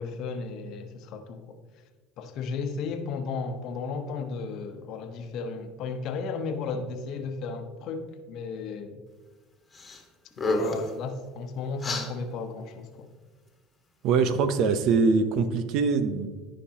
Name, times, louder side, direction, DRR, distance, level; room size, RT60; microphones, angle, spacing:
voice 1, 0.0-1.6 2.2-9.0 10.4-13.1, left 4 dB, 60° left, 1.0 m, -34 dB
sound 1, 9.7-10.0 10.3-10.9 11.8-12.1, left 1 dB, 20° left, 1.6 m, -29 dB
voice 2, 14.0-16.3, right 5 dB, 65° right, 0.8 m, -23 dB
14.5 x 5.2 x 2.9 m
supercardioid pair, 100°, 0 cm